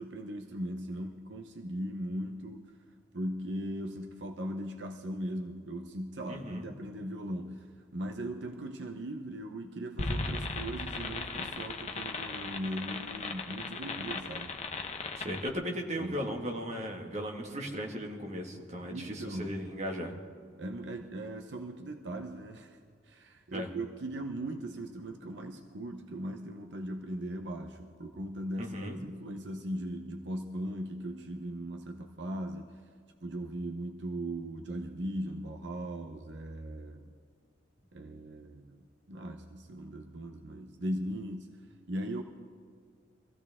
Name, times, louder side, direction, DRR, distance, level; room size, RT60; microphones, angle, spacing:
voice 1, 0.0-2.8 3.1-14.6 16.0-16.2 18.9-19.6 20.6-22.8 23.0-32.8 33.2-37.1 37.9-41.6 41.9-42.2, right 1 dB, 70° right, 5 dB, 0.8 m, -39 dB
voice 2, 6.3-6.7 15.1-20.1 23.5-23.7 28.6-29.0, equal, 35° right, 1 dB, 1.9 m, -37 dB
sound 1, 10.0-15.5, left 3 dB, 35° left, 1.1 m, -37 dB
24.0 x 15.5 x 3.6 m, 2.1 s
head